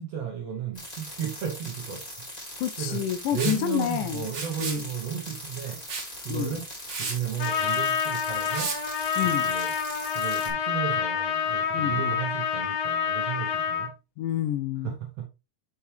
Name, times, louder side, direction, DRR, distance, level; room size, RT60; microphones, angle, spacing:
voice 1, 0.0-2.0 2.5-3.1 3.3-5.8 6.2-6.6 7.0-8.7 9.2-9.7 10.1-13.9 14.8-15.3, right 9 dB, 70° right, 1.5 m, -34 dB
sound 1, 0.7-10.5, left 1 dB, 15° left, 1.7 m, -41 dB
voice 2, 2.6-4.3 4.6-4.8 6.3-6.5 9.2-9.5 11.7-12.1 14.2-14.9, left 11 dB, 90° left, 1.8 m, -28 dB
Liquid, 3.4-3.6 4.3-4.8 5.9-6.1 6.5-6.6 6.9-7.2 8.5-8.8, right 4 dB, 45° right, 1.2 m, -32 dB
Trumpet, 7.4-13.9, left 7 dB, 70° left, 3.4 m, -27 dB
7.2 x 5.8 x 3.2 m
omnidirectional pair, 4.3 m